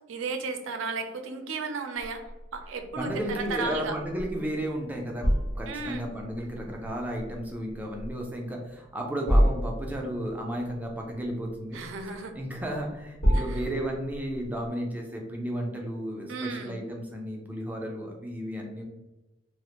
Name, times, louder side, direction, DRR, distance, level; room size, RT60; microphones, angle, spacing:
voice 1, 0.1-2.2 2.5-3.9 5.7-6.0 11.7-12.3 13.3-13.6 16.3-16.8, right 4 dB, 80° right, 6 dB, 0.4 m, -34 dB
sound 1, 2.0-14.7, equal, 90° left, 1.0 m, -30 dB
voice 2, 3.0-5.3 5.6-11.8 12.3-18.8, equal, 10° right, 0 dB, 0.3 m, -33 dB
2.3 x 2.1 x 2.8 m, 1.1 s
head